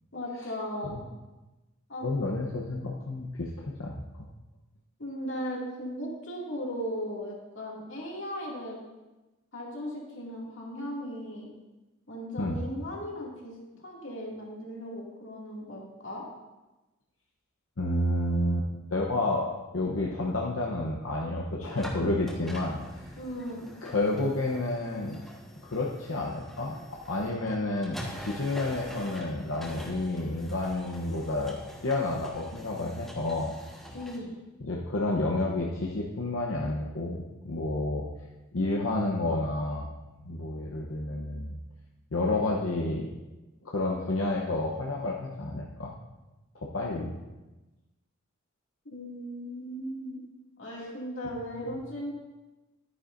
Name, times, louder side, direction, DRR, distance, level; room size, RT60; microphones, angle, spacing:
voice 1, 0.1-1.0 1.9-2.1 5.0-8.8 9.5-11.5 12.1-16.2 23.2-23.6 33.9-34.3 48.9-50.3 50.6-52.1, equal, 65° left, -3 dB, 2.4 m, -37 dB
voice 2, 2.0-3.5 3.8-4.3 12.4-12.6 17.8-22.8 23.8-25.2 25.6-31.6 31.8-33.5 34.6-38.0 38.5-39.9 40.3-41.6 42.1-43.1 43.6-45.9 46.5-47.1 51.7-51.8, left 2 dB, 85° left, -2 dB, 0.9 m, -30 dB
sound 1, 21.6-34.2, equal, ahead, 1.4 m, -45 dB
11.5 x 9.7 x 2.6 m, 1.1 s
head